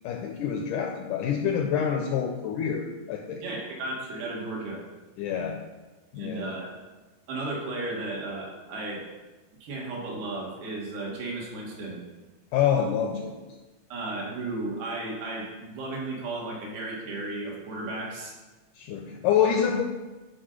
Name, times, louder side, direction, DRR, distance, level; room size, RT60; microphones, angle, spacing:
voice 1, 0.0-3.4 5.2-5.6 6.1-6.5 12.5-13.3 18.8-19.8, left 8 dB, 80° left, 3 dB, 1.9 m, -26 dB
voice 2, 3.4-4.8 6.2-6.7 7.3-9.0 9.6-12.0 13.9-18.3, right 2 dB, 85° right, -3 dB, 3.8 m, -34 dB
11.0 x 4.0 x 6.4 m, 1.2 s
omnidirectional pair, 4.3 m